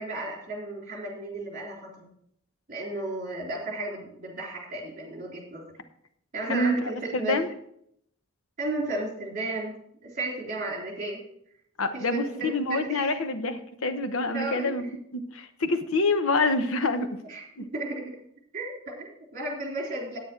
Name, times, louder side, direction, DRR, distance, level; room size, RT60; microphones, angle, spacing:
voice 1, 0.0-2.1 2.7-5.6 6.3-7.4 8.6-9.7 10.0-11.2 11.9-13.2 14.2-14.9 17.3-18.2 18.5-20.2, right 2 dB, 35° right, -1 dB, 3.5 m, -34 dB
voice 2, 7.1-7.5 11.8-14.8 15.1-17.2 17.6-17.7, left 2 dB, 75° left, 8 dB, 1.0 m, -26 dB
9.4 x 9.4 x 4.5 m, 0.70 s
head